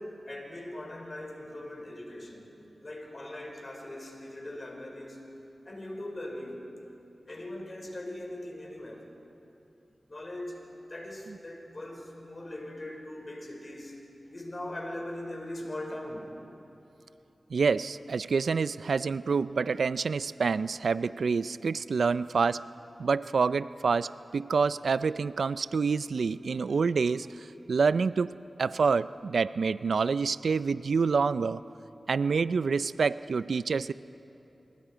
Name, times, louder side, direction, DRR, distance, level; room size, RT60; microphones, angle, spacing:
voice 1, 0.0-2.5 2.8-5.2 5.6-6.7 7.3-9.1 10.1-10.6 10.9-14.0 14.3-16.2, left 1 dB, 40° left, 1 dB, 5.1 m, -40 dB
voice 2, 17.5-22.6 23.0-27.3 27.7-28.3 28.6-31.6 32.1-33.9, right 5 dB, 85° right, 15 dB, 0.4 m, -27 dB
27.5 x 25.5 x 5.1 m, 3.0 s
cardioid pair, 55°, 0 cm